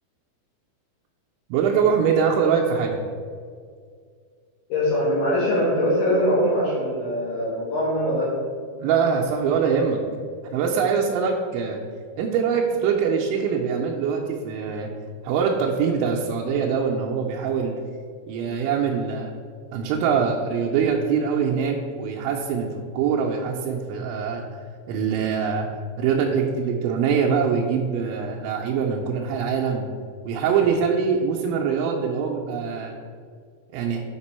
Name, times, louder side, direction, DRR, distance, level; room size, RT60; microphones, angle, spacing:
voice 1, 1.5-3.0 8.8-10.0 10.5-11.8 12.2-14.9 15.2-17.7 18.3-19.3 19.7-24.4 24.9-25.7 26.0-29.9 30.3-32.9 33.7-34.0, right 6 dB, 85° right, -2 dB, 2.9 m, -23 dB
voice 2, 4.7-8.3, equal, 65° left, -6 dB, 2.3 m, -22 dB
7.5 x 5.2 x 4.2 m, 2.1 s
omnidirectional pair, 5.3 m